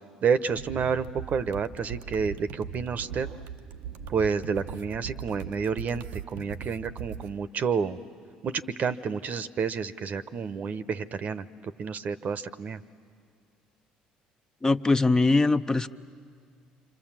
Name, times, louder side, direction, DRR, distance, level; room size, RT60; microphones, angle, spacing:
voice 1, 0.2-3.3 4.1-8.0 8.4-12.8, right 6 dB, 50° right, 13 dB, 0.9 m, -29 dB
sound 1, 0.6-7.3, right 8 dB, 75° right, 0.7 m, -40 dB
voice 2, 14.6-15.9, left 3 dB, 20° left, 10 dB, 0.7 m, -22 dB
27.0 x 26.0 x 7.5 m, 2.2 s
hypercardioid pair, 60°, 3 cm